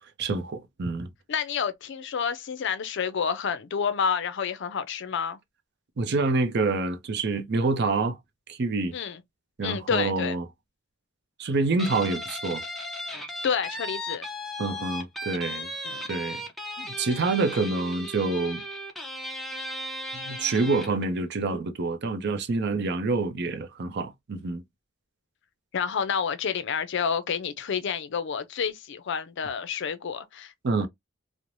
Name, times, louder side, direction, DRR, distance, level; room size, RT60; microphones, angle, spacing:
voice 1, 0.2-1.1 6.0-8.2 8.5-8.9 9.6-10.4 11.4-12.6 14.6-15.7 16.1-16.4 16.8-18.6 20.1-24.6 30.6-30.9, right 3 dB, 55° right, 0.5 m, -27 dB
voice 2, 1.3-5.4 8.9-9.2 9.6-10.4 13.4-14.3 15.8-16.0 25.7-30.5, left 6 dB, 60° left, 0.4 m, -29 dB
Guitar, 11.8-21.0, left 1 dB, ahead, 0.6 m, -36 dB
3.1 x 2.0 x 2.5 m
head